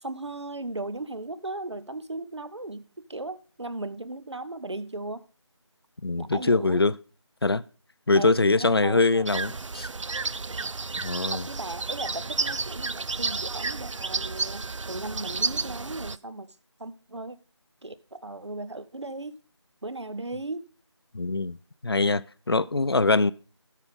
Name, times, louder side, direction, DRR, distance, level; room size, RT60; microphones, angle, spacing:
voice 1, 0.0-5.2 6.2-6.8 8.1-9.6 11.2-16.5 16.8-17.4 17.8-19.4 19.8-20.7, right 2 dB, 65° right, 0.8 m, -37 dB
voice 2, 6.0-7.0 7.4-7.6 8.1-9.9 11.0-11.4 21.1-21.6 21.8-23.3, left 3 dB, 55° left, 0.4 m, -23 dB
sound 1, 9.3-16.2, right 4 dB, 85° right, 0.4 m, -31 dB
12.5 x 5.7 x 3.6 m
figure-of-eight pair, 165°, 15 cm